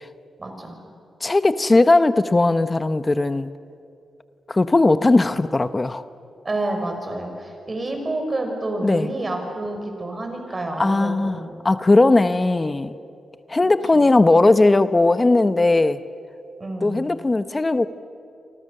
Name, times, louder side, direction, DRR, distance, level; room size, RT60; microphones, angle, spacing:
voice 1, 0.4-0.7 6.4-11.5 13.9-14.0 16.6-17.0, right 2 dB, 35° right, 3 dB, 5.9 m, -29 dB
voice 2, 1.2-3.5 4.5-6.0 8.8-9.1 10.8-12.9 13.5-16.0 16.8-17.9, left 2 dB, 30° left, 12 dB, 0.9 m, -18 dB
28.5 x 25.0 x 6.7 m, 2.5 s
cardioid pair, 65°, 0 cm